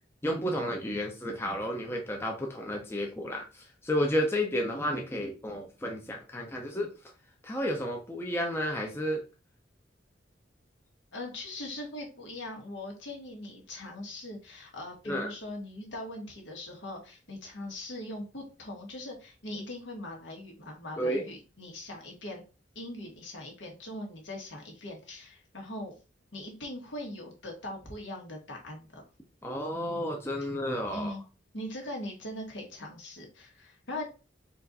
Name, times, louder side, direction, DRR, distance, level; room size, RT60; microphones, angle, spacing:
voice 1, 0.2-6.9 7.4-9.2 15.1-15.3 21.0-21.2 29.4-31.2, equal, 15° left, 1 dB, 0.6 m, -31 dB
voice 2, 11.1-22.4 22.7-25.9 26.3-29.0 30.9-31.2 31.5-34.0, left 1 dB, 75° left, 0 dB, 1.5 m, -41 dB
4.3 x 2.6 x 4.0 m, 0.32 s
head